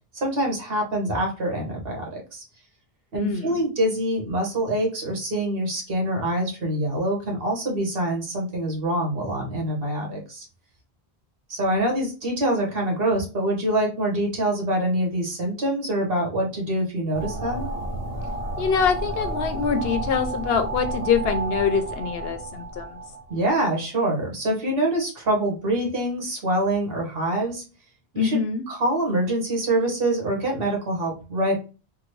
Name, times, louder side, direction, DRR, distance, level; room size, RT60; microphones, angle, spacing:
voice 1, 0.1-2.4 3.1-10.4 11.5-17.7 23.3-27.6 28.1-28.4 28.7-31.5, right 1 dB, 65° right, 0 dB, 1.3 m, -25 dB
voice 2, 3.1-3.6 18.6-23.0 28.2-28.6, left 6 dB, 75° left, 7 dB, 0.8 m, -24 dB
sound 1, 17.1-23.5, right 2 dB, 45° right, 0.6 m, -31 dB
3.7 x 2.0 x 3.1 m, 0.33 s
omnidirectional pair, 1.0 m